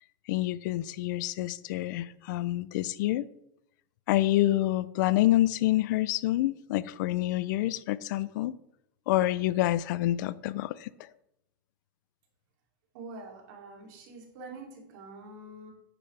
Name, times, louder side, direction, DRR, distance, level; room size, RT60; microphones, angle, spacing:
voice 1, 0.3-3.3 4.1-8.6 9.1-10.9, left 15 dB, 60° left, 18 dB, 0.4 m, -27 dB
voice 2, 12.9-15.7, right 2 dB, 60° right, 0 dB, 2.8 m, -45 dB
9.8 x 8.7 x 3.3 m, 0.81 s
supercardioid pair, 150°, 11 cm